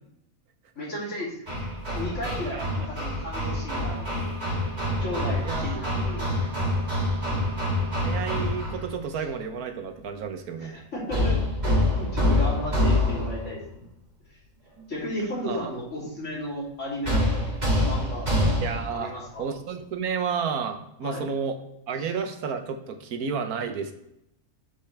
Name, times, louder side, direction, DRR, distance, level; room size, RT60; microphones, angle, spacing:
voice 1, 0.7-1.4 1.9-4.3 5.0-6.5 10.6-11.4 12.0-13.8 14.9-18.3 18.9-19.4 21.0-21.2, equal, 55° left, -6 dB, 3.4 m, -34 dB
Hammer, 1.5-8.9 11.1-13.5 17.0-19.0, left 1 dB, 30° right, 2.3 m, -26 dB
voice 2, 2.3-2.7 5.4-5.8 8.0-10.7 15.5-15.7 18.6-19.1 19.4-21.6 21.9-23.9, right 6 dB, 90° right, 7 dB, 1.4 m, -31 dB
7.4 x 6.7 x 3.3 m, 0.79 s
omnidirectional pair, 1.5 m